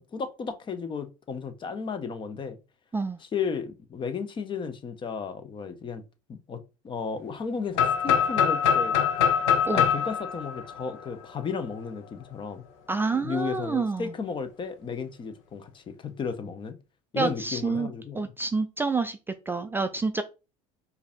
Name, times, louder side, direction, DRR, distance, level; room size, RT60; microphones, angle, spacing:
voice 1, 0.0-2.6 3.2-6.0 6.3-8.9 9.7-12.6 13.1-16.8 17.1-18.3, left 5 dB, 30° left, 0.8 m, -34 dB
sound 1, 7.7-11.6, left 7 dB, 80° left, 0.8 m, -24 dB
voice 2, 12.9-14.1 17.2-19.2 19.5-20.2, right 4 dB, 15° right, 0.4 m, -28 dB
4.6 x 2.7 x 3.5 m
supercardioid pair, 95°, 16 cm